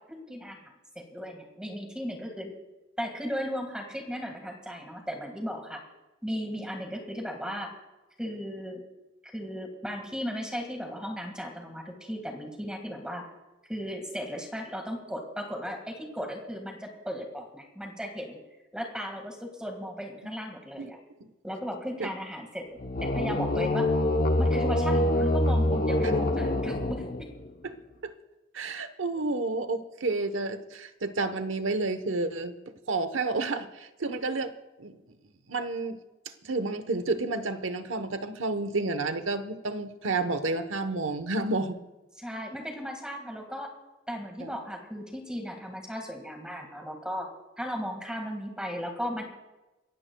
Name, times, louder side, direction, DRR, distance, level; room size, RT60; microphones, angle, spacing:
voice 1, 0.1-0.6 1.0-2.5 3.0-5.8 6.2-7.7 8.2-8.8 9.2-13.2 13.7-18.4 18.7-21.0 21.4-22.7 23.0-23.9 24.4-27.3 42.2-43.7 44.1-47.3 47.6-49.2, equal, 5° right, 2 dB, 1.8 m, -36 dB
Swiss chocolate sea monster, 22.8-27.5, left 1 dB, 45° left, 0.9 m, -25 dB
voice 2, 28.5-32.5 32.9-34.5 34.8-35.0 35.5-36.0 36.4-41.8 44.4-44.5, right 3 dB, 80° right, 10 dB, 1.1 m, -30 dB
29.5 x 15.5 x 2.3 m, 1.1 s
head